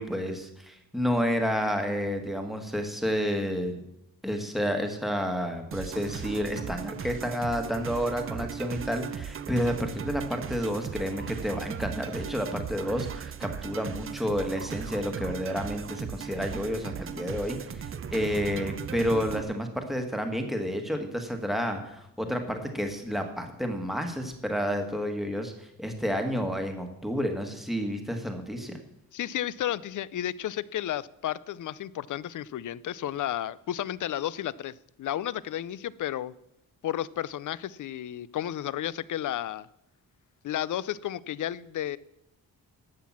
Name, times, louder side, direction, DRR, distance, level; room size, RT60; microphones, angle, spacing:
voice 1, 0.0-3.8 4.2-28.8, equal, ahead, 4 dB, 1.3 m, -30 dB
sound 1, 5.7-19.4, right 7 dB, 35° right, 0.5 m, -37 dB
voice 2, 29.1-36.3 36.8-39.7 40.4-42.0, left 11 dB, 55° left, 20 dB, 0.4 m, -32 dB
11.5 x 7.6 x 7.2 m, 0.83 s
wide cardioid pair, 175°, 37 cm